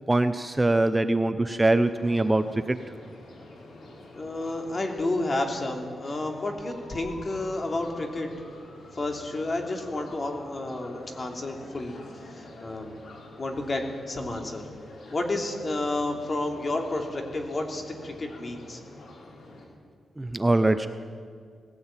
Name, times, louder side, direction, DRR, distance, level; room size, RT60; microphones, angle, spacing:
voice 1, 0.1-2.8 20.2-20.9, right 2 dB, 15° right, 10 dB, 0.7 m, -23 dB
sound 1, 1.8-19.7, left 2 dB, 75° left, 4.8 m, -47 dB
voice 2, 4.2-8.3 9.0-12.0 12.3-12.9 13.4-14.6 15.1-18.8, left 2 dB, 35° left, 3 dB, 3.0 m, -31 dB
19.0 x 16.5 x 8.9 m, 2.1 s
wide cardioid pair, 110°, 0 cm